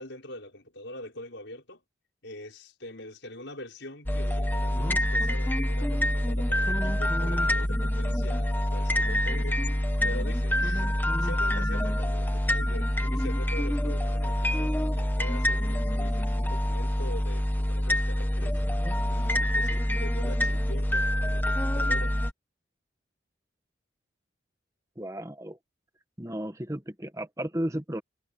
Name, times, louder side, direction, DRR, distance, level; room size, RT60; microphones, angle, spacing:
voice 1, 0.0-1.8 2.2-9.6 10.0-18.6 19.1-22.2, left 1 dB, 70° left, 5.4 m, -43 dB
sound 1, 4.1-22.3, equal, 10° left, 1.2 m, -26 dB
voice 2, 25.0-25.6 26.2-28.0, right 1 dB, 15° right, 1.3 m, -34 dB
head